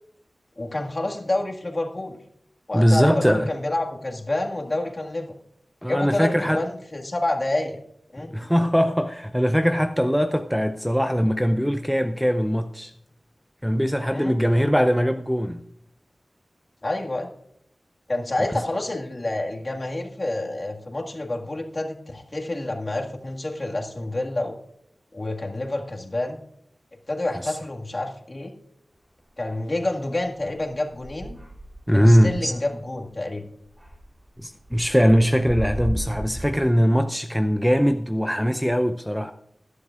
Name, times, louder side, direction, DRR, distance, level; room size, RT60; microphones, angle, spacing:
voice 1, 0.6-2.2 2.7-5.3 5.9-7.8 8.1-8.3 14.1-14.4 16.8-17.3 18.1-24.6 25.1-26.4 27.1-28.5 29.4-31.4 31.9-33.4, left 2 dB, 40° left, 1.9 m, -28 dB
voice 2, 2.7-3.5 5.8-6.6 8.2-12.9 13.6-15.6 27.4-27.5 31.9-32.5 34.4-39.3, equal, ahead, 0.6 m, -21 dB
sound 1, 29.4-29.6 30.2-33.2 33.6-36.5, equal, 20° right, 3.0 m, -35 dB
20.0 x 11.0 x 2.5 m
wide cardioid pair, 65°, 0 cm